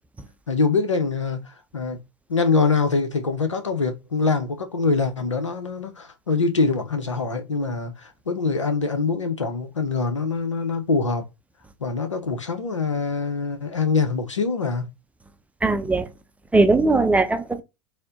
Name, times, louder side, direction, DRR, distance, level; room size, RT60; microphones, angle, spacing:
voice 1, 0.5-2.0 2.3-11.2 11.8-14.9, left 4 dB, 90° left, 0.8 m, -24 dB
voice 2, 15.6-16.0 16.5-17.6, right 3 dB, 10° right, 0.5 m, -19 dB
4.2 x 2.1 x 3.8 m
figure-of-eight pair, 85°, 15 cm